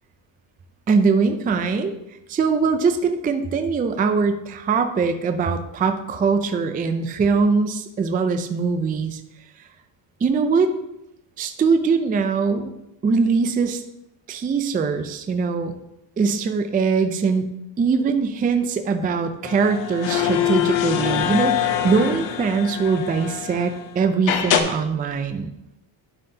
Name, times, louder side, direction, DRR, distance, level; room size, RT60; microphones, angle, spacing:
voice 1, 0.9-1.9 2.3-9.2 10.2-10.7 11.4-12.7 13.0-13.8 14.3-15.7 16.2-17.4 17.8-25.5, right 5 dB, 20° right, 7 dB, 0.3 m, -22 dB
sound 1, 19.4-23.8 24.3-24.6, left 10 dB, 75° left, 0.9 m, -24 dB
11.5 x 5.6 x 2.7 m, 0.86 s
cardioid pair, 160°, 46 cm